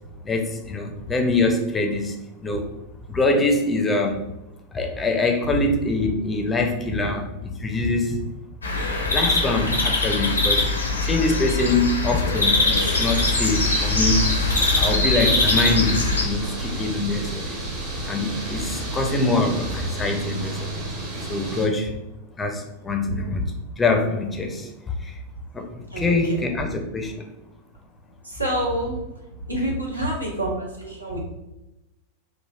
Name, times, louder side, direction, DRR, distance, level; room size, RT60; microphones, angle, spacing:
voice 1, 0.2-2.1 2.4-2.7 3.1-4.2 4.7-8.2 9.1-10.6 11.0-14.3 14.7-17.5 18.1-20.7 21.3-21.9 22.4-23.4 23.8-24.7 25.5-25.6 26.0-27.2, left 2 dB, 15° left, 4 dB, 0.4 m, -24 dB
sound 1, 8.6-16.2, left 3 dB, 80° left, 0.5 m, -22 dB
sound 2, 12.7-21.7, right 2 dB, 45° right, 0.9 m, -31 dB
voice 2, 28.2-29.0 29.5-31.2, right 1 dB, 85° right, -2 dB, 0.7 m, -27 dB
3.2 x 2.4 x 2.3 m, 0.94 s
figure-of-eight pair, 90°, 0 cm